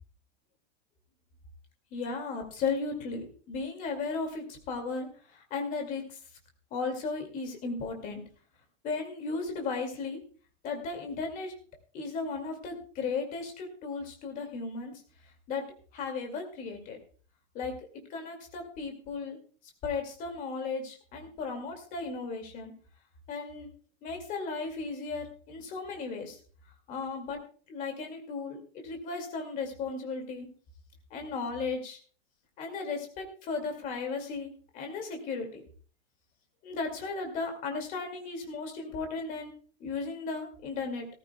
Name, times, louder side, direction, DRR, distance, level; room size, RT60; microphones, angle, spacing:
voice 1, 1.9-6.2 6.7-8.2 8.8-10.2 10.6-11.5 11.9-15.0 15.5-15.7 15.9-17.0 17.5-17.8 18.1-19.4 19.8-22.7 23.3-23.7 24.0-26.4 26.9-27.4 27.7-30.5 31.1-32.0 32.6-35.6 36.6-39.5 39.8-41.1, left 4 dB, 20° left, 4 dB, 2.2 m, -35 dB
17.5 x 14.5 x 2.3 m, 0.41 s
supercardioid pair, 180°, 35 cm